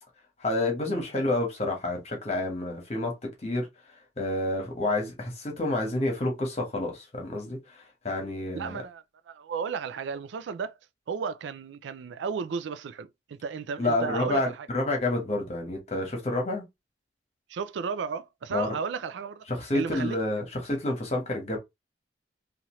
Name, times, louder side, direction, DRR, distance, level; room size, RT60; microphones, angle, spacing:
voice 1, 0.4-3.7 4.2-8.8 13.8-16.6 18.5-18.7 19.5-21.6, left 2 dB, 35° left, 1.1 m, -29 dB
voice 2, 8.5-10.7 11.1-14.7 17.5-19.5 19.7-20.2, right 6 dB, 90° right, 0.4 m, -34 dB
2.8 x 2.5 x 3.0 m
head